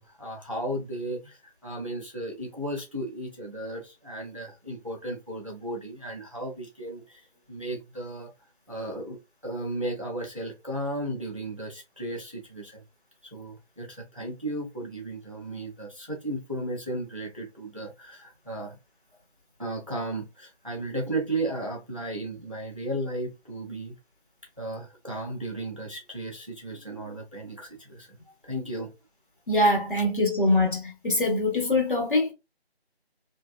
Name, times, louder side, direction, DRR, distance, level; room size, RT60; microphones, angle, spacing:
voice 1, 0.0-8.3 8.7-9.2 9.4-12.8 13.2-18.8 19.6-24.0 24.6-28.1 28.4-28.9, right 1 dB, 30° right, 0.5 m, -35 dB
voice 2, 29.5-32.3, left 1 dB, 50° left, 1.4 m, -23 dB
2.7 x 2.2 x 2.3 m
figure-of-eight pair, 165°, 32 cm